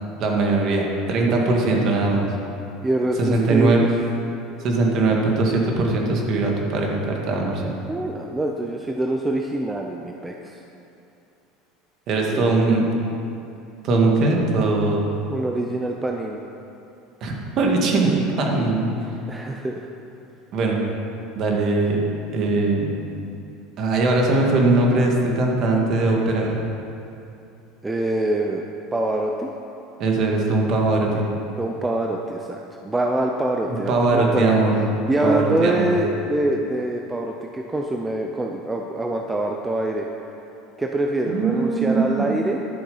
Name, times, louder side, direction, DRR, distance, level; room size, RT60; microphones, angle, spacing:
voice 1, 0.2-2.3 3.2-3.8 4.6-7.7 12.1-12.8 13.8-15.1 17.2-18.9 20.5-20.8 21.4-22.0 22.3-22.9 23.8-26.6 30.0-31.2 33.7-34.8 35.2-35.9 41.3-42.4, right 3 dB, 45° right, 0 dB, 1.9 m, -20 dB
voice 2, 2.8-3.9 7.9-10.5 12.3-12.5 15.3-16.4 19.3-19.8 27.8-28.6 28.9-29.5 31.6-34.4 35.1-40.1 40.8-42.6, right 1 dB, 10° right, 1 dB, 0.6 m, -25 dB
11.5 x 7.0 x 5.6 m, 2.7 s
supercardioid pair, 140°, 0 cm